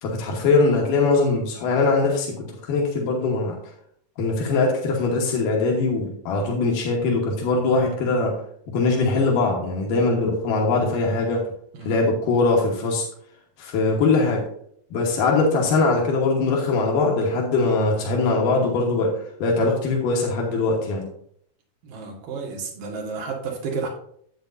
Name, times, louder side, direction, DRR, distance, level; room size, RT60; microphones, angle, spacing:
voice 1, 0.0-3.6 4.2-8.3 8.7-11.4 11.8-13.1 13.6-14.4 14.9-21.1, left 3 dB, 85° left, -1 dB, 2.9 m, -21 dB
voice 2, 21.8-23.9, right 4 dB, 85° right, -1 dB, 3.3 m, -31 dB
10.0 x 8.3 x 2.6 m, 0.66 s
omnidirectional pair, 3.7 m